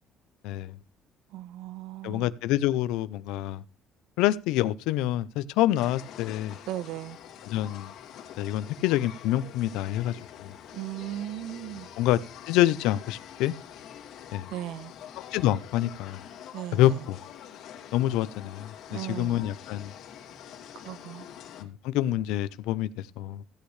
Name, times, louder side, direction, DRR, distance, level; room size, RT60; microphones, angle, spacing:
voice 1, 0.4-0.8 2.0-3.6 4.2-6.6 7.5-7.9 8.4-10.5 12.0-12.2 12.5-13.5 14.3-14.5 15.3-16.2 16.7-17.2 17.9-19.9 21.6-23.4, left 14 dB, 90° left, 0.6 m, -27 dB
voice 2, 1.3-2.3 6.7-7.2 10.7-11.9 14.5-14.9 16.5-17.1 18.9-19.4 20.8-21.3, right 13 dB, 75° right, 0.8 m, -37 dB
sound 1, 5.7-21.6, left 9 dB, 65° left, 2.4 m, -46 dB
16.0 x 8.5 x 3.2 m
cardioid pair, 125°, 0 cm